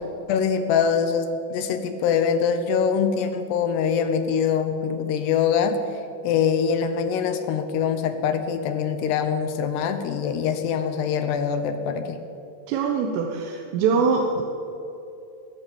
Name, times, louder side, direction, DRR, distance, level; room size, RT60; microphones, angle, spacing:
voice 1, 0.3-5.8 6.2-12.2, left 7 dB, 75° left, 8 dB, 2.7 m, -23 dB
voice 2, 12.7-14.4, right 5 dB, 90° right, 2 dB, 3.7 m, -23 dB
21.0 x 9.6 x 7.0 m, 2.8 s
omnidirectional pair, 5.5 m